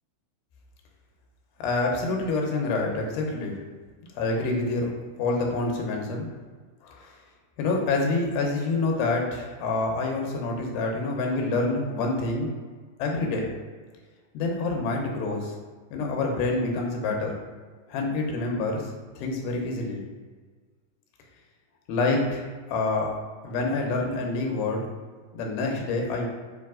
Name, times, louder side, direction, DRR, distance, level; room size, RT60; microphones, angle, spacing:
voice 1, 1.6-3.6 4.2-4.9 5.2-6.3 6.8-7.1 7.6-12.5 13.0-13.5 14.3-15.5 15.9-17.4 17.9-18.8 19.2-20.1 21.9-23.1 23.4-24.9 25.3-26.3, left 3 dB, 90° left, 1 dB, 2.6 m, -27 dB
5.6 x 2.6 x 3.6 m, 1.5 s
omnidirectional pair, 4.4 m